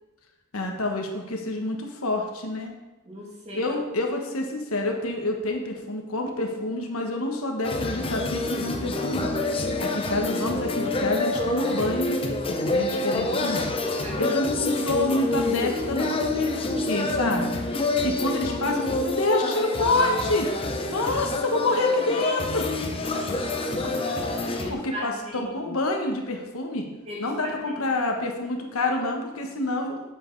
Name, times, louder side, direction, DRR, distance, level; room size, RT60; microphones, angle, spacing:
voice 1, 0.5-2.7 3.5-13.7 14.2-17.6 18.0-22.7 23.8-23.9 24.2-26.9 27.2-30.0, left 2 dB, 70° left, 2 dB, 1.4 m, -28 dB
voice 2, 3.0-3.7 14.0-14.4 23.1-25.8 27.1-27.9, equal, 30° right, -3 dB, 2.4 m, -39 dB
sound 1, 7.6-24.7, left 2 dB, 25° left, 0.7 m, -27 dB
7.9 x 7.6 x 4.7 m, 1.1 s
head